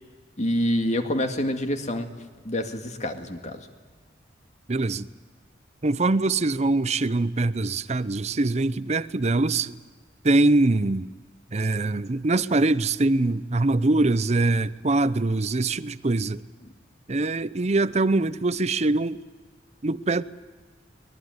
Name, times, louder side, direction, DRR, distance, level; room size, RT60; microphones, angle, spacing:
voice 1, 0.4-2.1 2.4-3.7, left 1 dB, 40° left, 2.0 m, -27 dB
voice 2, 4.7-5.1 5.8-9.8 10.2-11.1 11.5-16.4 17.1-19.2 19.8-20.2, right 2 dB, 35° right, 0.6 m, -23 dB
23.5 x 20.5 x 9.5 m
head